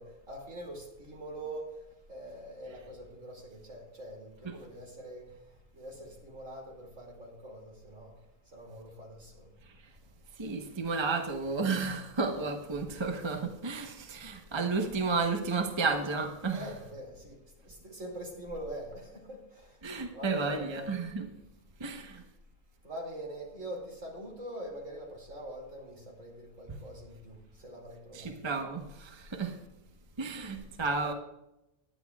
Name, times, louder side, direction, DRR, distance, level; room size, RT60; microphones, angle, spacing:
voice 1, 0.0-1.6 2.1-5.2 5.8-6.6 7.0-8.1 8.5-9.2 16.5-17.4 17.8-19.0 20.1-21.0 22.8-27.3 27.6-28.3 30.8-31.1, right 1 dB, 65° right, 0 dB, 3.0 m, -43 dB
voice 2, 10.4-16.7 19.8-21.3 21.8-22.2 28.1-29.6 30.2-31.1, right 4 dB, 25° right, 4 dB, 0.9 m, -32 dB
18.5 x 10.5 x 2.4 m, 0.90 s
omnidirectional pair, 1.4 m